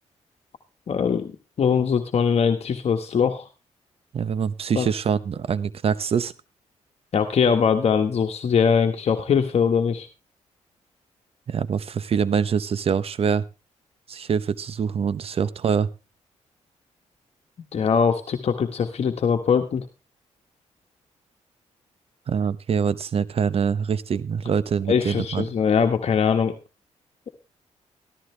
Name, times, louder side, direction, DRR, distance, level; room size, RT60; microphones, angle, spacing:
voice 1, 0.9-1.3 1.6-3.5 4.7-4.9 7.1-10.1 17.7-19.8 24.9-26.5, left 6 dB, 55° left, 5 dB, 1.4 m, -21 dB
voice 2, 4.1-6.3 11.5-13.4 14.1-15.9 22.3-25.5, right 7 dB, 55° right, 17 dB, 0.8 m, -24 dB
14.5 x 13.0 x 3.3 m, 0.28 s
cardioid pair, 85°, 12 cm